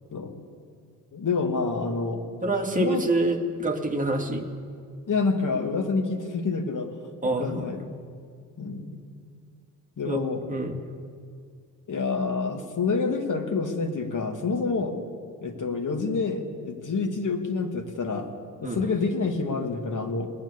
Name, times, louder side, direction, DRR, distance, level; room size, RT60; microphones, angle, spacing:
voice 1, 1.1-2.2 2.8-3.0 5.1-6.9 7.2-7.9 8.6-9.0 10.0-10.4 11.9-15.0 15.4-18.3 18.6-20.3, left 4 dB, 40° left, 4 dB, 2.3 m, -27 dB
voice 2, 2.4-4.4 7.2-7.8 10.0-10.8 18.6-18.8, right 2 dB, 15° right, 1 dB, 2.3 m, -27 dB
20.5 x 9.2 x 7.1 m, 2.2 s
figure-of-eight pair, 45°, 49 cm